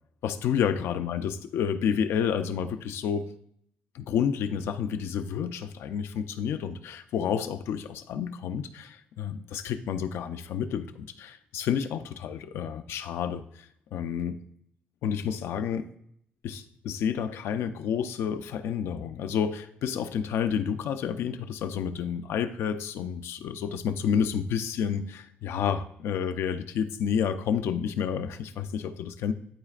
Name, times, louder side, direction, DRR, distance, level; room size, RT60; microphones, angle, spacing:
voice 1, 0.2-3.3 3.9-14.4 15.0-15.9 16.4-29.3, left 8 dB, 80° left, 9 dB, 0.5 m, -30 dB
12.0 x 4.1 x 2.4 m, 0.70 s
cardioid pair, 110°, 4 cm